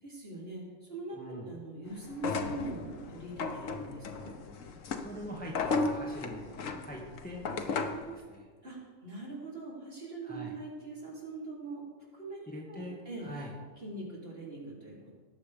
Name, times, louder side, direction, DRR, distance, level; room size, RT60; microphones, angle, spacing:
voice 1, 0.0-4.3 7.9-8.3 8.6-11.8 12.1-12.4 12.7-13.3 13.8-15.1, right 2 dB, 50° right, -5 dB, 3.8 m, -42 dB
voice 2, 1.1-1.5 4.9-8.5 10.2-10.5 12.5-13.5, equal, 5° left, -2 dB, 1.6 m, -44 dB
sound 1, 2.1-8.1, left 4 dB, 90° left, 1.3 m, -35 dB
18.0 x 7.1 x 5.1 m, 1.4 s
omnidirectional pair, 1.3 m